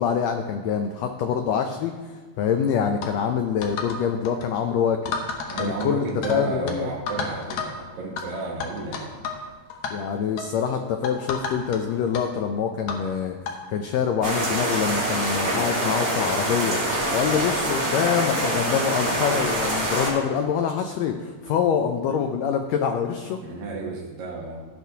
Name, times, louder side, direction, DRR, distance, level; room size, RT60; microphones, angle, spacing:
voice 1, 0.0-5.0 5.6-6.9 9.9-13.4 13.7-16.8 17.1-23.4, left 7 dB, 90° left, 6 dB, 1.5 m, -25 dB
sound 1, 3.0-3.2 3.6-4.0 4.3-4.5 5.1-6.4 6.7-6.8 7.1-7.7 8.2-8.3 8.6-9.4 9.7-9.9 10.4-10.5 11.0-11.8 12.1-12.2 12.9-13.1 13.5-13.6 14.3-14.4 14.6-14.7 15.2-15.3 16.2-16.3 17.2-17.4, left 5 dB, 70° left, 2.1 m, -31 dB
voice 2, 5.4-9.2 23.4-24.6, right 3 dB, 60° right, -4 dB, 1.7 m, -32 dB
sound 2, 14.2-20.1, right 1 dB, 35° right, 2.8 m, -25 dB
16.0 x 6.0 x 2.8 m, 1.4 s
omnidirectional pair, 3.6 m